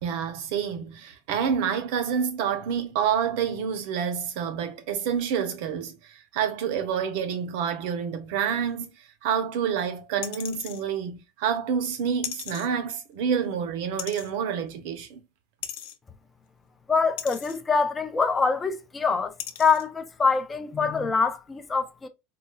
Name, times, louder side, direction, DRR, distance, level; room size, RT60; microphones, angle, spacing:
voice 1, 0.0-15.2, right 7 dB, 60° right, 0.7 m, -28 dB
sound 1, 10.2-10.8 12.2-12.7 14.0-14.3 15.6-16.0 17.2-17.6 18.6-18.7 19.4-19.8 20.3-20.4, left 11 dB, 70° left, 0.5 m, -36 dB
voice 2, 16.9-22.1, left 5 dB, 15° left, 0.4 m, -25 dB
3.8 x 2.3 x 2.3 m
supercardioid pair, 165°, 0 cm